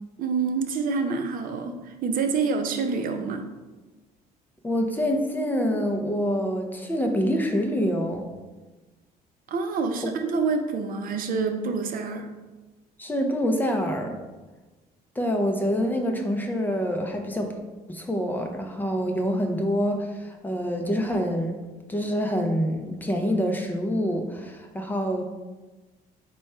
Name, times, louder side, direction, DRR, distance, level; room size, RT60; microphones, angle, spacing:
voice 1, 0.2-3.5 9.5-12.3, right 4 dB, 55° right, 6 dB, 0.6 m, -27 dB
voice 2, 4.6-8.3 13.0-14.1 15.2-17.5 17.9-21.6 21.9-25.3, equal, 10° left, 3 dB, 0.5 m, -26 dB
4.5 x 2.2 x 4.2 m, 1.2 s
cardioid pair, 110°, 17 cm